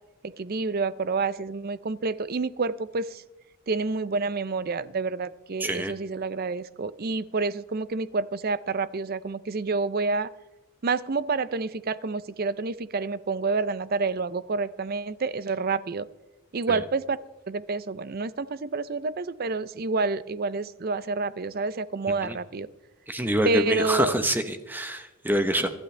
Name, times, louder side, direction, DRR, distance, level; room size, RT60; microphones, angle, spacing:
voice 1, 0.2-3.2 3.7-10.3 10.8-16.1 16.5-17.2 17.5-22.7 23.4-24.1, right 4 dB, 40° right, 16 dB, 0.5 m, -28 dB
voice 2, 5.6-5.9 22.2-22.3 23.1-25.7, equal, 10° right, 8 dB, 0.9 m, -26 dB
24.0 x 11.5 x 3.3 m, 1.0 s
head